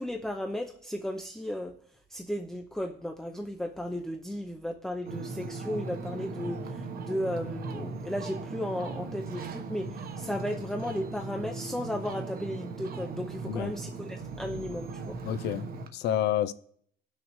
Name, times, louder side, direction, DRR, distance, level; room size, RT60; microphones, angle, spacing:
voice 1, 0.0-1.7 2.1-15.2, left 1 dB, 5° left, 0.7 m, -35 dB
Ocean, 5.0-15.9, right 4 dB, 55° right, 1.2 m, -38 dB
voice 2, 15.2-16.5, left 10 dB, 65° left, 0.5 m, -29 dB
17.0 x 6.5 x 3.1 m
cardioid pair, 120°, 18 cm